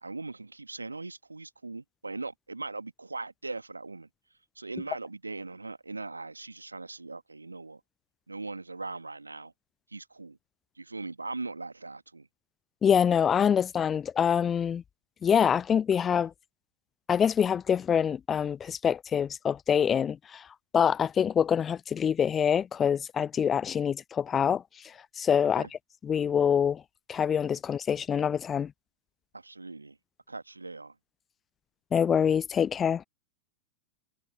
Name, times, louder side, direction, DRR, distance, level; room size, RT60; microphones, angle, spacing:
voice 1, 0.0-4.1 4.6-7.8 8.3-9.5 9.9-10.4 10.8-12.3 25.5-25.7 29.3-30.0 30.3-31.0, right 3 dB, 80° right, 1.9 m, -40 dB
voice 2, 12.8-14.8 15.2-16.3 17.1-20.4 20.7-24.6 25.2-25.6 26.0-26.8 27.1-28.7 31.9-33.0, left 8 dB, 20° left, 0.4 m, -25 dB
figure-of-eight pair, 90°, 0 cm